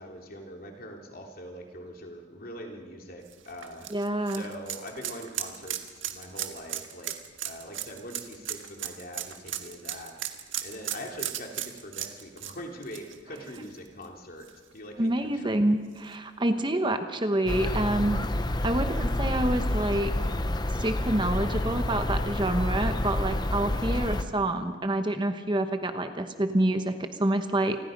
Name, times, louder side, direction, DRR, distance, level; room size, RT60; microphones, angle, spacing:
voice 1, 0.0-3.9 4.3-7.1 7.4-10.1 10.6-14.5 14.7-15.6, equal, 50° left, 1 dB, 3.3 m, -42 dB
sound 1, 3.3-14.0 14.4-14.5 16.0-16.1, right 11 dB, 85° right, 1.6 m, -36 dB
voice 2, 3.9-4.4 15.0-18.3 18.6-20.1 20.7-27.8, right 1 dB, 25° right, 8 dB, 1.0 m, -27 dB
sound 2, 17.5-24.2, left 1 dB, 20° left, 0.8 m, -28 dB
28.5 x 21.0 x 5.3 m, 1.5 s
head